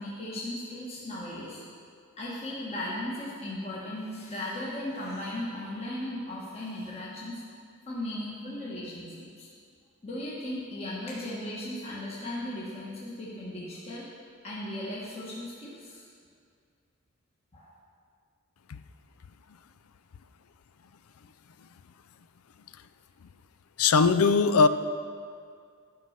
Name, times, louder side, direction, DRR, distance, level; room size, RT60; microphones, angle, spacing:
voice 1, 0.0-1.6 2.2-7.3 7.9-9.5 10.0-14.1 14.4-16.0 17.5-17.8, left 1 dB, 30° left, -7 dB, 1.4 m, -37 dB
voice 2, 23.8-24.7, left 5 dB, 80° left, 12 dB, 0.5 m, -20 dB
11.5 x 5.5 x 6.5 m, 2.3 s
head